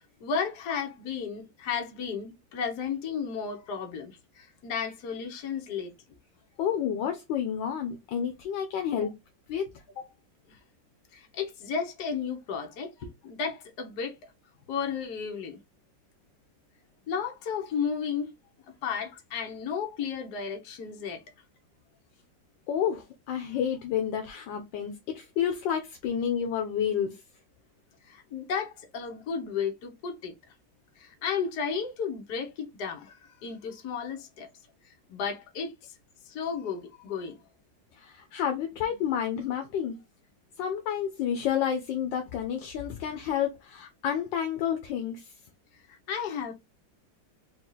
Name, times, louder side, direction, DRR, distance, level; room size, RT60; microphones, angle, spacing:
voice 1, 0.2-5.9 9.0-9.1 10.0-10.1 11.1-14.1 14.7-15.6 17.1-18.3 18.8-21.2 28.1-30.3 31.0-34.5 35.1-35.7 36.3-37.3 46.1-46.5, left 6 dB, 60° left, 1.4 m, -33 dB
voice 2, 6.6-9.1 9.5-9.7 22.7-27.2 37.9-40.0 40.6-45.3, left 8 dB, 80° left, 1.4 m, -30 dB
4.4 x 2.4 x 3.8 m
omnidirectional pair, 2.0 m